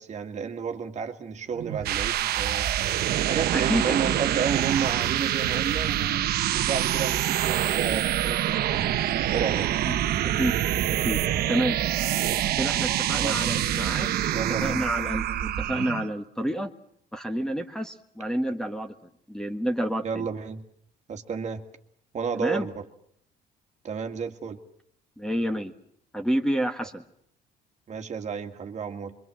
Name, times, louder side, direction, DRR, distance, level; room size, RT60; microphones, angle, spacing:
voice 1, 0.0-2.7 3.3-9.0 9.3-9.7 13.1-13.5 14.3-14.8 20.0-20.6 21.1-21.6 22.1-22.8 23.8-24.6 27.9-29.2, right 6 dB, 45° right, 6 dB, 1.9 m, -32 dB
sound 1, 1.6-16.1, right 12 dB, 65° right, 1.1 m, -26 dB
voice 2, 3.5-4.2 9.9-10.5 10.9-11.2 11.5-11.8 12.6-16.7 17.1-18.9 19.3-20.3 22.3-22.7 25.2-25.7 26.1-27.0, equal, 5° left, 6 dB, 1.6 m, -29 dB
25.0 x 23.5 x 7.6 m, 0.69 s
cardioid pair, 110°, 17 cm